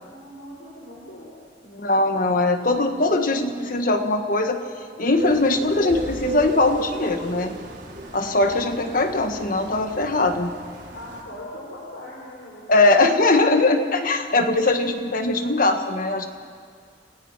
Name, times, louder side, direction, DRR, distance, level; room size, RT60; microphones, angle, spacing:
voice 1, 0.1-2.1 10.9-13.3, left 1 dB, 80° left, -5 dB, 4.6 m, -41 dB
voice 2, 1.8-4.6 5.0-7.5 8.1-10.5 12.7-16.3, left 2 dB, 50° left, 6 dB, 1.6 m, -21 dB
sound 1, 5.2-11.2, right 1 dB, 70° right, 3.8 m, -35 dB
28.5 x 18.0 x 5.8 m, 2.1 s
head